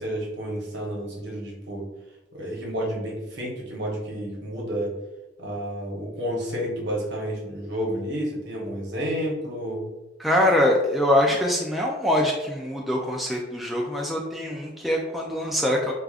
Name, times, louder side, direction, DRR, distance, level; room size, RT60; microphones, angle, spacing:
voice 1, 0.0-1.9 2.3-4.9 5.4-9.9, equal, 60° right, -2 dB, 1.0 m, -30 dB
voice 2, 10.2-15.9, left 1 dB, ahead, -2 dB, 0.3 m, -23 dB
4.7 x 2.4 x 2.4 m, 1.0 s
head